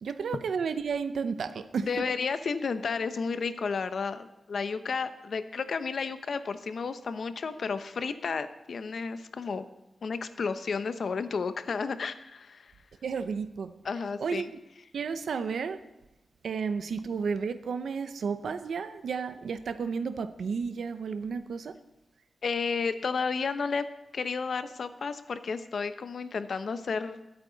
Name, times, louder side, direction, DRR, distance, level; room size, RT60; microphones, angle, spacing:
voice 1, 0.0-1.9 13.0-13.7 14.2-14.4 14.9-15.8 16.4-21.7, right 5 dB, 90° right, 10 dB, 0.7 m, -32 dB
voice 2, 1.8-9.6 10.0-12.7 13.8-14.5 22.4-23.9 24.1-27.2, left 5 dB, 60° left, 11 dB, 0.8 m, -32 dB
21.5 x 9.0 x 4.0 m, 0.96 s
wide cardioid pair, 155°, 0 cm